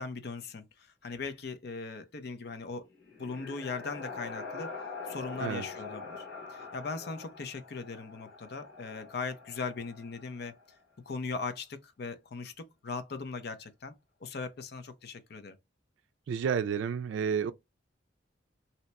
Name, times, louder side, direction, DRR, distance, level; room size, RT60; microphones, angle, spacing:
voice 1, 0.0-2.9 3.2-4.7 5.1-6.2 6.5-10.5 11.1-13.9 14.2-15.6, left 4 dB, 60° left, 0.6 m, -39 dB
sound 1, 2.8-10.6, left 4 dB, 85° left, 1.2 m, -44 dB
voice 2, 16.3-17.5, right 7 dB, 85° right, 0.3 m, -30 dB
2.8 x 2.1 x 4.0 m
head